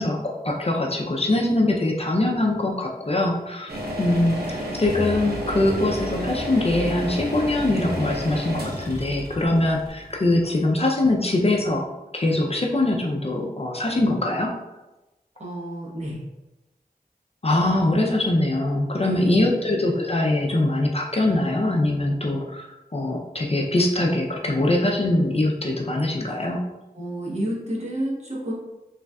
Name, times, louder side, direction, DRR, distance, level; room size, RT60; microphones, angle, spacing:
voice 1, 0.0-3.7 4.0-11.9 12.1-14.5 17.4-26.6, left 1 dB, 40° left, 0 dB, 0.5 m, -23 dB
sound 1, 3.7-10.6, equal, 90° right, 0.8 m, -31 dB
sound 2, 4.8-10.7, equal, 20° right, 1.0 m, -37 dB
voice 2, 15.4-16.2 19.0-19.5 26.9-28.5, right 1 dB, 45° right, -5 dB, 1.2 m, -30 dB
3.8 x 3.2 x 2.3 m, 1.0 s
wide cardioid pair, 60°, 16 cm